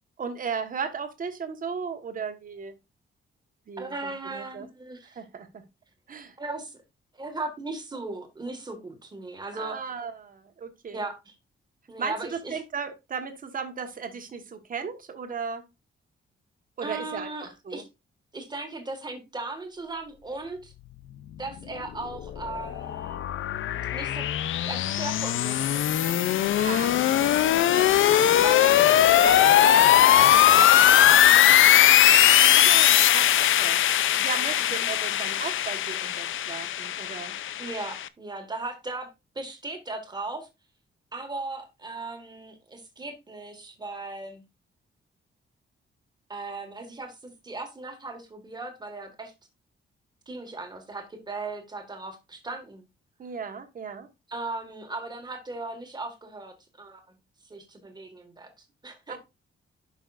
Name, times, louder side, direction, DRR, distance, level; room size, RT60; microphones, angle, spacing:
voice 1, 0.2-2.7 3.7-4.7 5.1-5.6 6.1-6.4 9.5-11.0 12.0-15.6 16.8-17.8 26.6-27.1 27.8-28.2 29.2-29.3 32.4-37.3 53.2-54.1 59.1-59.2, right 6 dB, 40° right, 1.3 m, -36 dB
voice 2, 3.8-5.2 6.4-6.8 7.1-9.8 10.9-11.3 11.9-12.6 16.8-17.9 18.3-20.7 21.4-23.2 23.9-24.3 24.6-26.3 26.7-27.3 27.6-28.8 29.2-31.9 32.1-32.8 34.6-34.9 37.6-39.1 39.3-40.5 41.1-44.4 46.3-49.3 50.3-52.8 54.3-57.1 57.4-59.2, right 2 dB, 20° right, 1.7 m, -37 dB
sound 1, 22.0-38.1, left 11 dB, 70° left, 0.5 m, -20 dB
11.0 x 5.7 x 2.5 m
wide cardioid pair, 175°, 21 cm